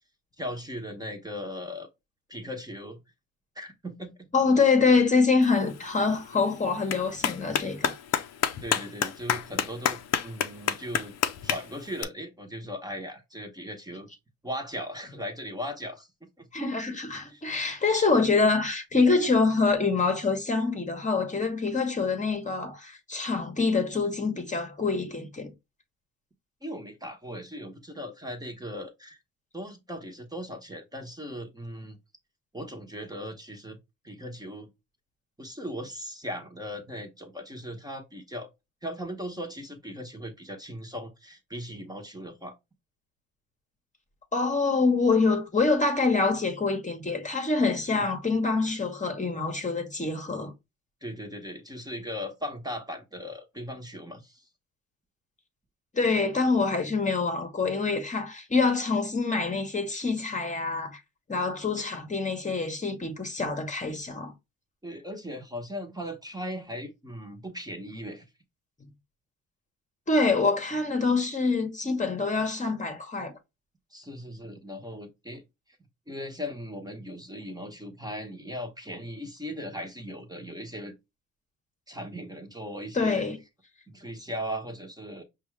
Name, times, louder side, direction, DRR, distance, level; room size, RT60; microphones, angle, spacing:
voice 1, 0.4-1.9 2.3-3.0 3.5-4.3 8.6-11.2 11.4-14.1 14.4-16.1 16.4-16.5 17.3-17.4 26.6-29.2 29.5-32.0 32.5-33.8 34.0-34.7 35.4-38.5 38.8-42.5 47.9-48.0 51.0-54.4 64.8-68.2 73.9-75.4 76.1-80.9 81.9-83.3 83.9-85.2, equal, 15° right, 1.0 m, -38 dB
voice 2, 4.3-8.0 16.5-25.5 44.3-50.5 55.9-61.0 61.3-64.3 70.1-73.3 82.9-83.4, left 4 dB, 25° left, 1.0 m, -25 dB
Clapping, 5.4-12.0, left 9 dB, 60° left, 0.6 m, -31 dB
5.4 x 2.4 x 3.1 m
cardioid pair, 90°, 30 cm